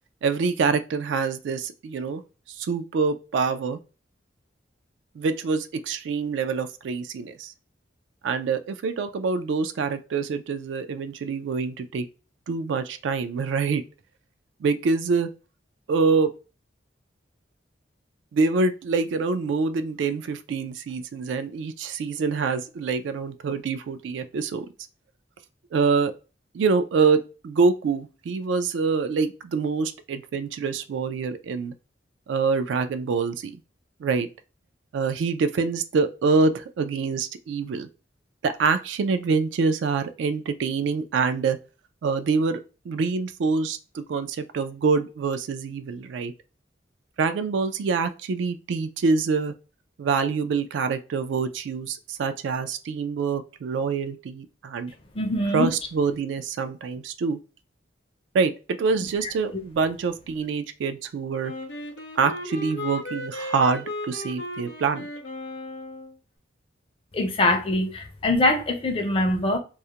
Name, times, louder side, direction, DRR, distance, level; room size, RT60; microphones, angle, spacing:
voice 1, 0.2-2.2 2.5-3.8 5.2-7.5 8.2-12.1 12.5-13.8 14.6-15.3 15.9-16.3 18.3-24.7 25.7-26.1 26.5-31.7 32.3-33.6 34.0-34.3 34.9-37.9 38.4-41.6 42.0-42.6 42.9-46.3 47.2-49.5 50.0-54.9 55.5-57.4 58.3-61.5 62.2-65.1, right 4 dB, 75° right, 0.3 m, -25 dB
voice 2, 55.2-55.7 67.1-69.6, left 2 dB, 30° left, 0.4 m, -23 dB
Wind instrument woodwind instrument, 61.4-66.1, left 1 dB, 80° left, 0.6 m, -35 dB
2.3 x 2.0 x 2.7 m
head